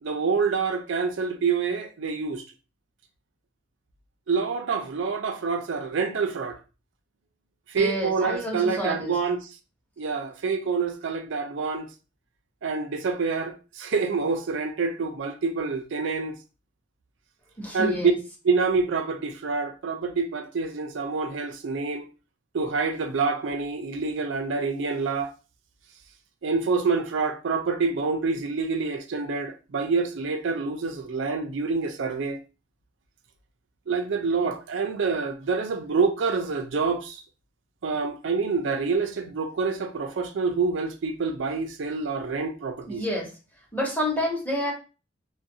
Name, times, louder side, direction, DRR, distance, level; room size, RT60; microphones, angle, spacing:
voice 1, 0.0-2.4 4.3-6.6 7.7-9.5 10.0-11.9 12.6-16.4 17.7-18.1 18.4-22.0 22.5-25.3 26.4-32.4 33.9-37.2 37.8-43.0, right 4 dB, 70° right, 0.4 m, -27 dB
voice 2, 7.8-9.1 17.6-18.1 42.9-43.3 43.7-44.7, left 1 dB, 10° left, 1.0 m, -29 dB
2.4 x 2.2 x 2.7 m
head